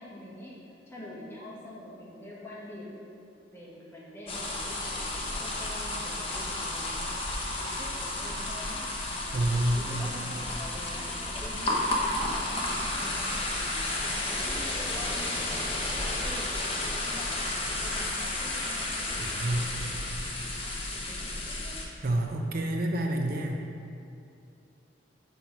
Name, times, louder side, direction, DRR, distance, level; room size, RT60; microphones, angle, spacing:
voice 1, 0.0-3.1 3.5-7.1 7.6-9.5 9.7-20.0 20.6-21.8, left 1 dB, 15° left, -7 dB, 1.6 m, -46 dB
sound 1, 4.3-21.8, left 2 dB, 30° left, 1.0 m, -32 dB
voice 2, 9.3-9.9 19.2-19.7 22.0-23.6, right 1 dB, 55° right, 2 dB, 0.6 m, -28 dB
5.8 x 5.4 x 6.1 m, 2.5 s
head